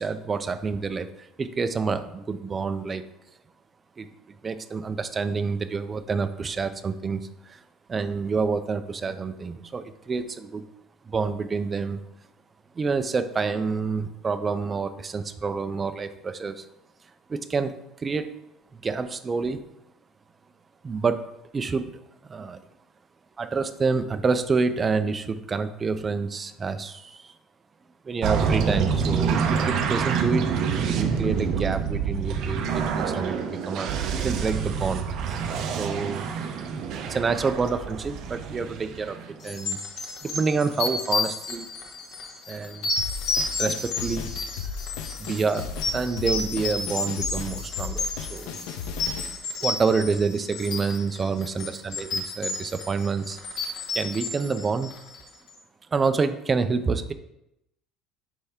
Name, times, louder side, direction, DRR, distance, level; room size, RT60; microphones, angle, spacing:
voice 1, 0.0-3.0 4.0-7.6 7.9-10.7 11.0-12.0 12.7-16.6 17.3-17.7 18.0-18.3 18.7-19.6 20.8-21.2 21.5-22.6 23.4-27.3 28.1-30.5 30.9-33.9 34.2-35.4 35.7-36.3 37.0-39.8 40.2-41.7 42.5-42.9 43.6-44.3 45.2-48.6 49.6-53.4 53.9-54.9 55.9-57.1, right 4 dB, 15° right, 10 dB, 0.3 m, -28 dB
sound 1, 28.2-39.3, right 6 dB, 45° right, 0.7 m, -27 dB
sound 2, 39.4-55.3, left 3 dB, 45° left, 1.1 m, -31 dB
sound 3, 43.0-49.4, left 6 dB, 75° left, 0.7 m, -35 dB
9.6 x 3.4 x 3.5 m, 0.85 s
cardioid pair, 180°, 0 cm